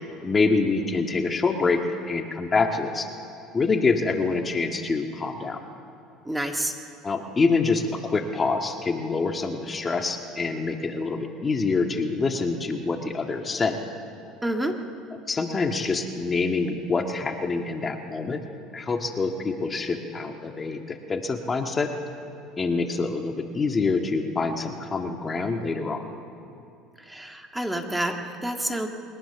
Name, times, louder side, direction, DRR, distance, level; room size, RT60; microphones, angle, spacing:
voice 1, 0.2-1.8 2.1-3.1 3.5-5.6 7.0-13.8 15.3-18.4 18.7-21.9 22.6-26.0, left 4 dB, 25° left, 4 dB, 1.8 m, -26 dB
voice 2, 6.2-6.7 14.4-14.7 27.1-28.9, right 1 dB, 5° right, 4 dB, 1.7 m, -28 dB
22.0 x 19.5 x 7.0 m, 2.7 s
supercardioid pair, 90°, 0 cm